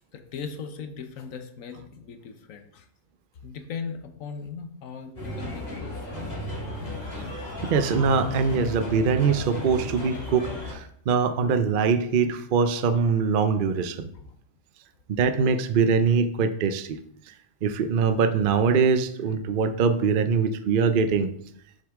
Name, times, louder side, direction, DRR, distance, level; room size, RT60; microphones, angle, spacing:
voice 1, 0.0-2.9 3.4-6.2 14.1-14.4, left 5 dB, 85° left, 6 dB, 1.3 m, -38 dB
sound 1, 5.2-10.7, left 1 dB, 30° left, 2.5 m, -34 dB
voice 2, 7.6-14.1 15.1-17.0 17.6-21.3, right 5 dB, 55° right, 9 dB, 0.7 m, -23 dB
6.7 x 6.5 x 3.6 m, 0.66 s
omnidirectional pair, 1.3 m